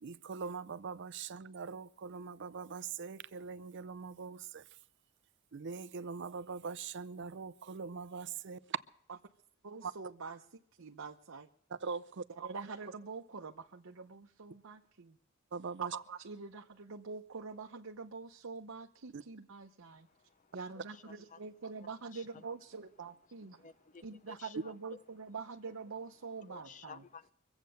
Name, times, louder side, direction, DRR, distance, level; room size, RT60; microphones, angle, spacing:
voice 1, 0.0-4.6 5.5-8.8 9.8-9.9 11.8-12.2 15.5-15.9 19.1-19.2, right 5 dB, 60° right, 0.5 m, -42 dB
voice 2, 9.6-11.5 12.3-15.2 15.8-20.1 20.5-23.7 24.0-27.0, right 4 dB, 90° right, 0.8 m, -45 dB
voice 3, 19.9-21.4 21.8-22.4 23.5-25.0 26.5-27.3, left 5 dB, 40° left, 0.8 m, -55 dB
24.0 x 8.1 x 6.5 m
head